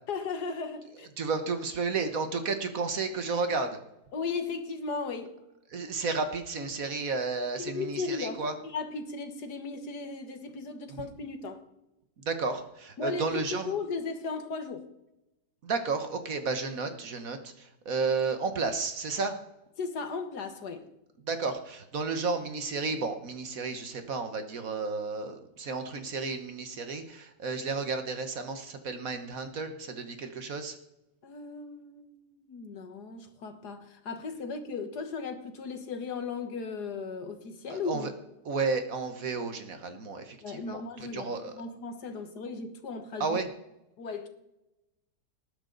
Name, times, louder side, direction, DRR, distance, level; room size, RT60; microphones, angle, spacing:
voice 1, 0.1-1.1 4.1-5.4 7.6-11.6 13.0-14.9 19.8-20.9 31.2-38.1 40.4-43.4 44.0-44.3, left 4 dB, 70° left, 1.9 m, -36 dB
voice 2, 1.2-3.8 5.7-8.5 10.9-11.1 12.2-13.7 15.6-19.4 21.2-30.8 37.7-38.1 38.5-41.6 43.2-43.5, right 4 dB, 55° right, 1.6 m, -32 dB
19.0 x 10.0 x 4.0 m
omnidirectional pair, 1.9 m